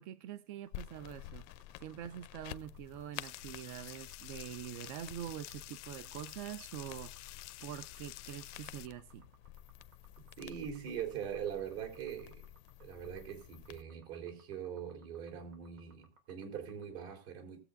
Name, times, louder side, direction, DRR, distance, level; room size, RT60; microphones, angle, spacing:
voice 1, 0.0-1.4 1.8-7.1 7.6-9.3, right 11 dB, 40° right, 0.4 m, -45 dB
sound 1, 0.6-16.9, right 4 dB, 85° right, 3.5 m, -65 dB
sound 2, 0.7-13.8, left 13 dB, 40° left, 0.5 m, -51 dB
sound 3, 3.1-8.9, left 19 dB, 85° left, 0.7 m, -50 dB
voice 2, 10.4-12.5 12.8-17.6, right 8 dB, 65° right, 3.9 m, -42 dB
19.5 x 7.8 x 2.6 m
supercardioid pair, 170°, 34 cm